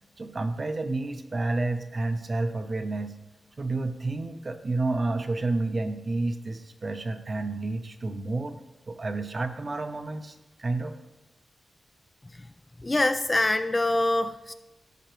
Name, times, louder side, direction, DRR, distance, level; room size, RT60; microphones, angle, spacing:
voice 1, 0.2-3.1 3.6-8.6 8.9-10.9, right 2 dB, 30° right, 9 dB, 0.6 m, -30 dB
voice 2, 12.8-14.5, left 2 dB, 20° left, 9 dB, 0.3 m, -24 dB
16.0 x 5.7 x 3.1 m, 1.0 s
wide cardioid pair, 140°, 0 cm